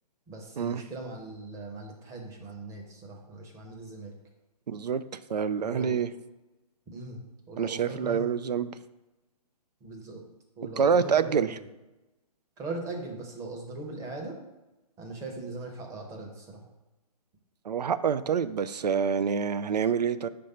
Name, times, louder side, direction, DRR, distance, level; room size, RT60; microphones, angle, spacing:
voice 1, 0.3-4.1 5.6-6.1 6.9-8.6 9.8-10.2 10.6-11.6 12.6-14.4 15.0-16.6, right 2 dB, 15° right, 1 dB, 0.8 m, -40 dB
voice 2, 4.7-5.0 5.3-6.1 7.6-8.7 10.8-11.5 17.7-20.3, right 7 dB, 85° right, 14 dB, 0.4 m, -26 dB
5.2 x 3.3 x 5.5 m, 1.0 s
hypercardioid pair, 140°, 20 cm